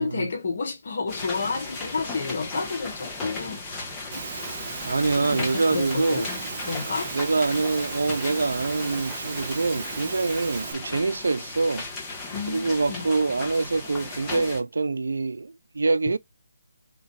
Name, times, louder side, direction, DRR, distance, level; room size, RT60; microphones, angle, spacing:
voice 1, 0.0-3.9 4.8-6.3 6.6-7.1 12.3-13.0, left 4 dB, 55° left, 1.0 m, -31 dB
sound 1, 1.1-14.6, left 3 dB, 15° left, 1.3 m, -36 dB
Engine / Mechanisms, 4.1-10.7, right 6 dB, 40° right, 0.8 m, -36 dB
voice 2, 4.8-6.3 7.1-11.9 12.5-16.2, right 3 dB, 75° right, 0.4 m, -25 dB
3.8 x 2.9 x 4.2 m
figure-of-eight pair, 155°, 0 cm